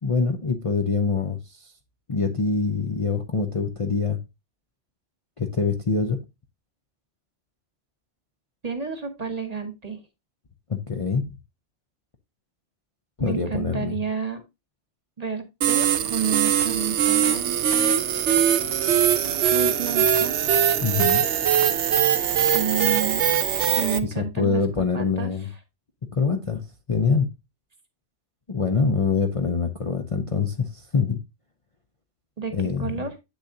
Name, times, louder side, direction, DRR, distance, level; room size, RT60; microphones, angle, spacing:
voice 1, 0.0-1.7 2.1-4.2 5.4-6.2 10.7-11.2 13.2-14.0 20.8-21.2 24.0-25.5 26.1-27.3 28.5-31.2 32.5-33.1, left 5 dB, 35° left, 0.6 m, -25 dB
voice 2, 8.6-10.0 13.2-14.4 15.2-17.9 19.5-20.4 22.5-23.2 23.7-25.3 32.4-32.5 32.8-33.1, right 6 dB, 35° right, 1.2 m, -30 dB
sound 1, 15.6-24.0, right 9 dB, 75° right, 1.0 m, -21 dB
8.2 x 6.4 x 2.6 m
omnidirectional pair, 1.2 m